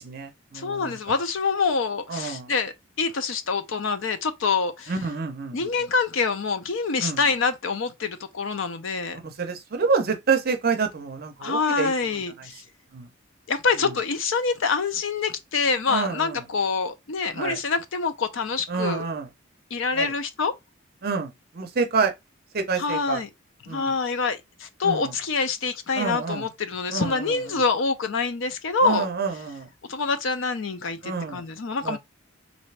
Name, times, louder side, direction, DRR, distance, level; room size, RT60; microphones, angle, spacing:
voice 1, 0.0-1.2 2.1-2.5 4.9-5.7 7.0-7.2 9.2-11.9 12.9-13.1 15.9-16.4 17.3-17.6 18.7-19.3 19.9-20.1 21.0-22.1 22.5-23.2 23.7-23.9 24.8-25.1 26.0-26.5 26.9-27.6 28.8-29.7 31.0-31.4 31.8-32.0, right 5 dB, 50° right, 0.6 m, -28 dB
voice 2, 0.5-4.9 5.5-9.2 11.4-12.6 13.5-19.1 19.7-20.5 22.8-23.3 23.7-29.1 29.9-32.0, left 4 dB, 65° left, 0.6 m, -26 dB
3.3 x 2.6 x 3.2 m
head